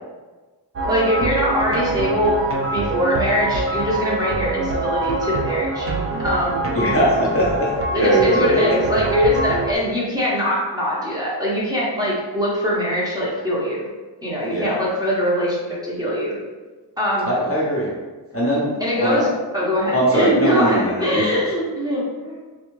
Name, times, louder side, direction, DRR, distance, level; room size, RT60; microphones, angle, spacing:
voice 1, 0.8-2.4 2.7-5.9 6.2-6.6 7.9-13.9 14.2-15.6 15.8-16.4 17.0-17.3 18.8-19.3 19.5-22.4, equal, 10° right, -7 dB, 0.9 m, -22 dB
sound 1, 0.8-9.8, right 2 dB, 35° right, 0.4 m, -24 dB
voice 2, 6.7-7.7 8.0-8.9 14.5-14.8 17.2-17.9 18.3-18.7 19.0-19.3 19.9-21.4, equal, 30° left, -6 dB, 0.8 m, -20 dB
3.4 x 2.3 x 3.1 m, 1.3 s
wide cardioid pair, 95°, 43 cm